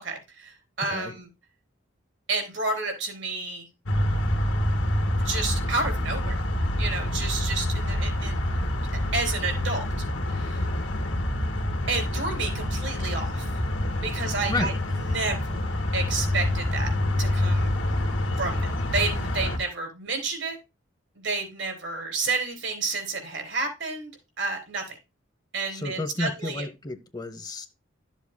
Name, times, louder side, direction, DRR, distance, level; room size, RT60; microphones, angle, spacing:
voice 1, 0.0-1.3 2.3-3.7 5.2-6.4 6.8-8.4 9.1-9.8 10.3-10.7 11.9-13.5 14.0-15.7 15.9-16.9 17.2-17.7 18.4-20.6 21.2-24.1 24.4-25.0 25.5-26.7, right 3 dB, 70° right, 3.8 m, -30 dB
sound 1, 3.9-19.6, left 1 dB, 85° left, 2.0 m, -27 dB
voice 2, 14.1-14.8 25.7-27.7, left 2 dB, 20° left, 0.8 m, -32 dB
13.0 x 7.2 x 2.2 m
head